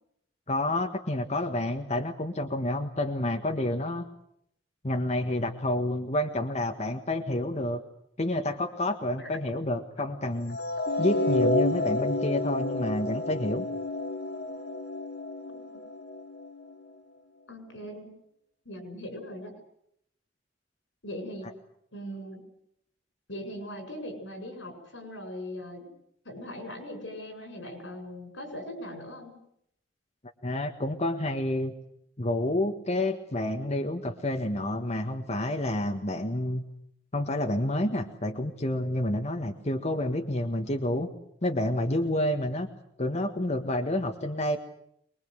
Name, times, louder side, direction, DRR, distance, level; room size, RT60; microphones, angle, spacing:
voice 1, 0.5-4.0 4.8-7.8 8.2-10.6 11.0-13.6 30.4-31.7 32.2-36.6 37.1-41.1 41.4-42.7 43.0-44.6, left 1 dB, 35° left, 5 dB, 1.6 m, -29 dB
sound 1, 10.5-16.7, left 2 dB, 55° left, 3.5 m, -30 dB
voice 2, 17.5-18.1 18.7-19.5 21.0-21.5 21.9-22.4 23.3-25.9 26.2-29.4, left 1 dB, 85° left, 7 dB, 7.5 m, -40 dB
24.0 x 22.0 x 8.0 m, 0.73 s
head